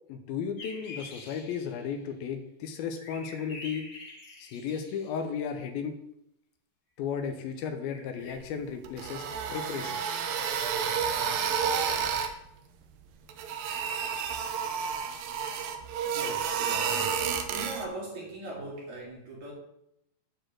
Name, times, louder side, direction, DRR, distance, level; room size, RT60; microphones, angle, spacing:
voice 1, 0.1-3.9 4.4-6.0 7.0-9.2 9.5-10.0, left 7 dB, 80° left, 7 dB, 2.7 m, -34 dB
sound 1, 0.6-2.0 3.0-5.2 7.9-8.4, left 3 dB, 45° left, 1.5 m, -46 dB
sound 2, 8.8-12.3 13.3-17.8, right 7 dB, 75° right, 2.5 m, -30 dB
voice 2, 16.0-17.2 17.5-19.5, right 2 dB, 55° right, -3 dB, 4.1 m, -40 dB
8.9 x 4.9 x 7.6 m, 0.79 s
omnidirectional pair, 4.3 m